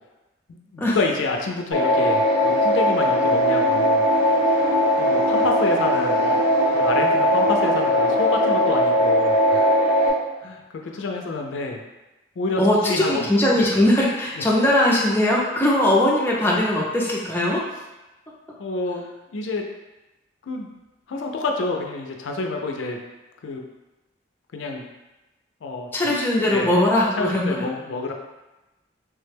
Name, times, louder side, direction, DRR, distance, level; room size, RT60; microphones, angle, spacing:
voice 1, 0.5-4.0 5.0-6.4 6.7-9.7 10.4-11.8 12.4-13.2 18.6-19.0 19.3-19.6 20.4-20.7 21.1-23.0 23.4-23.6 24.5-24.8 25.6-25.9 26.5-26.7 27.2-28.1, left 3 dB, 85° left, 2 dB, 0.4 m, -28 dB
sound 1, 1.7-10.1, equal, 75° right, 1.0 m, -19 dB
voice 2, 12.6-17.6 25.9-27.7, left 1 dB, 10° left, -4 dB, 0.4 m, -20 dB
3.2 x 2.1 x 3.3 m, 1.0 s
head